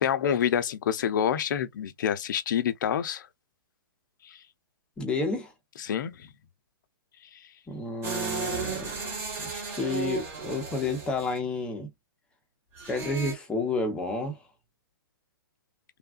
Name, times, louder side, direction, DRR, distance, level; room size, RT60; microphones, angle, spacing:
voice 1, 0.0-3.3 4.2-4.4 5.8-6.3 7.3-7.5, left 9 dB, 55° left, 0.6 m, -27 dB
voice 2, 5.0-5.5 7.7-8.9 9.4-11.9 12.9-14.4, left 3 dB, 10° left, 0.8 m, -30 dB
sound 1, 8.0-11.4 12.8-13.3, right 5 dB, 20° right, 1.2 m, -34 dB
3.4 x 2.3 x 2.4 m
hypercardioid pair, 160°, 12 cm